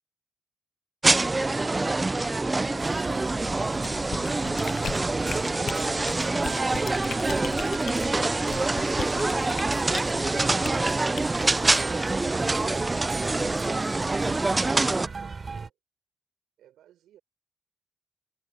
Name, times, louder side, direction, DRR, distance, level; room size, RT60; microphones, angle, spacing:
sound 1, 1.0-15.1, right 2 dB, 20° right, 0.6 m, -25 dB
sound 2, 2.8-15.7, right 4 dB, 35° right, 3.6 m, -37 dB
sound 3, 3.8-10.1 10.6-10.8 11.2-11.4, left 8 dB, 60° left, 0.8 m, -37 dB
voice 1, 16.6-17.2, right 12 dB, 80° right, 7.1 m, -54 dB
cardioid pair, 90°, 0 cm